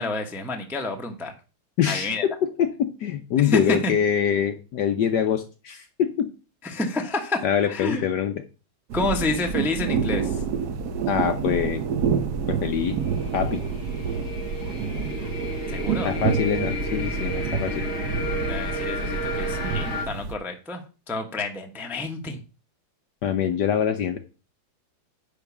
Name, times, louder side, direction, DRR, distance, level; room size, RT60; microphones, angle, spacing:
voice 1, 0.0-1.3 1.9-2.2 3.4-3.9 6.6-8.0 8.9-10.4 15.7-16.1 18.5-22.4, left 2 dB, ahead, 3 dB, 0.6 m, -29 dB
voice 2, 1.8-6.3 7.4-8.3 11.1-11.8 12.5-13.0 13.3-13.6 16.0-17.8 23.2-24.2, left 8 dB, 65° left, 7 dB, 1.1 m, -24 dB
sound 1, 8.9-20.3, right 6 dB, 65° right, 1.1 m, -28 dB
sound 2, 12.7-20.0, left 1 dB, 30° left, 2.2 m, -32 dB
10.0 x 3.4 x 7.1 m, 0.33 s
omnidirectional pair, 2.4 m